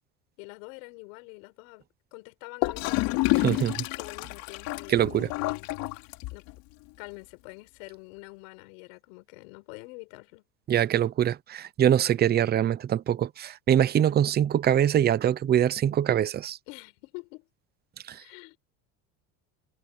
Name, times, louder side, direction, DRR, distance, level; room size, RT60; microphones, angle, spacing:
voice 1, 0.4-1.8 2.1-3.7 4.0-5.7 6.0-6.4 7.0-10.4 16.7-17.5 18.1-18.6, left 29 dB, 75° left, 7.7 m, -46 dB
Gurgling / Toilet flush, 2.6-6.6, left 20 dB, 60° left, 3.2 m, -29 dB
voice 2, 4.9-5.3 10.7-16.6, right 10 dB, 25° right, 0.8 m, -23 dB
supercardioid pair, 140°, 38 cm